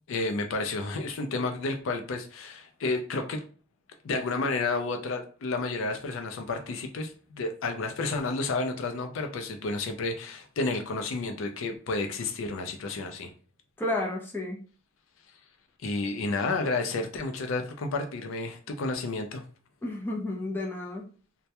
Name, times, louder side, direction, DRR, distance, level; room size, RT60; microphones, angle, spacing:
voice 1, 0.1-3.4 4.0-13.3 15.8-19.4, left 3 dB, 80° left, 5 dB, 0.4 m, -31 dB
voice 2, 13.8-14.6 19.8-21.1, left 2 dB, 10° left, -2 dB, 0.4 m, -32 dB
2.2 x 2.1 x 2.8 m, 0.39 s
head